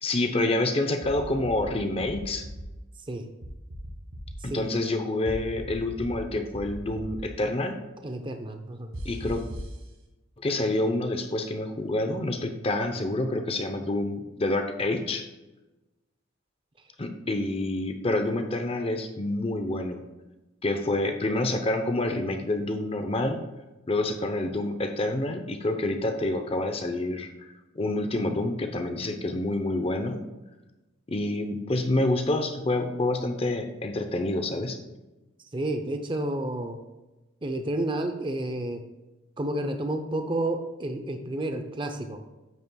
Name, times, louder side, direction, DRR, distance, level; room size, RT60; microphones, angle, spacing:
voice 1, 0.0-2.5 4.4-7.8 9.0-9.4 10.4-15.3 17.0-20.0 20.6-23.4 23.9-30.2 31.1-34.8, left 2 dB, 30° left, 6 dB, 0.7 m, -28 dB
sound 1, 1.0-1.7 2.0-2.7 3.4-4.4 5.3-6.2 6.5-7.2 8.9-9.7, equal, 80° right, 1.6 m, -38 dB
voice 2, 8.0-8.9 35.5-36.8 37.4-38.8 39.4-42.2, right 1 dB, 25° right, 6 dB, 0.6 m, -30 dB
9.3 x 8.3 x 2.3 m, 1.1 s
head